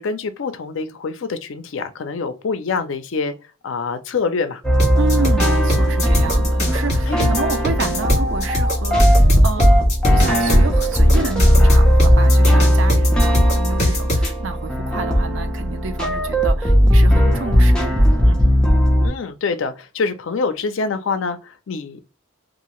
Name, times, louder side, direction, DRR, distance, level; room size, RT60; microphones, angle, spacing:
voice 1, 0.0-3.3 3.6-4.6 7.1-7.2 19.0-22.0, left 4 dB, 70° left, 0.4 m, -25 dB
sound 1, 4.6-19.1, equal, 5° left, 0.6 m, -16 dB
sound 2, 4.8-14.3, left 1 dB, 35° left, 1.5 m, -22 dB
voice 2, 5.0-18.5, right 4 dB, 65° right, 0.4 m, -30 dB
2.7 x 2.5 x 2.9 m
head